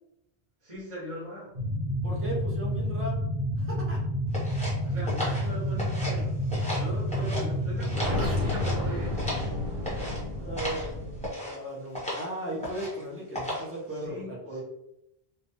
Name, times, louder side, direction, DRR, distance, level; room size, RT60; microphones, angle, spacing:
voice 1, 0.6-1.6 4.9-6.4 6.8-9.4 13.9-14.6, right 1 dB, 35° right, -8 dB, 1.1 m, -40 dB
sound 1, 1.5-11.3, equal, 50° right, 0.9 m, -30 dB
voice 2, 2.0-3.1 3.6-4.0 4.8-4.9 7.2-7.4 10.4-11.1 11.4-14.6, equal, 15° right, -3 dB, 0.6 m, -36 dB
sound 2, 4.3-6.2 6.5-7.4 7.8-9.5 9.8-10.2 10.6-10.9 11.2-11.6 11.9-12.3 12.6-13.0 13.3-13.8, left 1 dB, 5° left, 0.9 m, -35 dB
2.7 x 2.2 x 2.9 m, 0.82 s
omnidirectional pair, 1.1 m